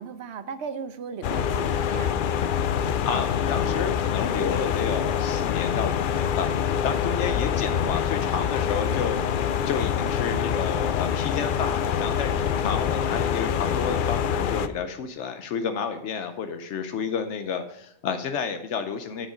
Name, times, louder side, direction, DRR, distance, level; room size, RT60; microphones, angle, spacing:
voice 1, 0.0-2.1 7.6-7.9 8.1-8.7, right 6 dB, 70° right, 11 dB, 1.0 m, -37 dB
sound 1, 1.2-14.7, left 8 dB, 60° left, 0.6 m, -25 dB
voice 2, 2.9-19.3, left 6 dB, 80° left, 8 dB, 1.0 m, -31 dB
7.8 x 7.6 x 5.0 m, 0.84 s
omnidirectional pair, 1.2 m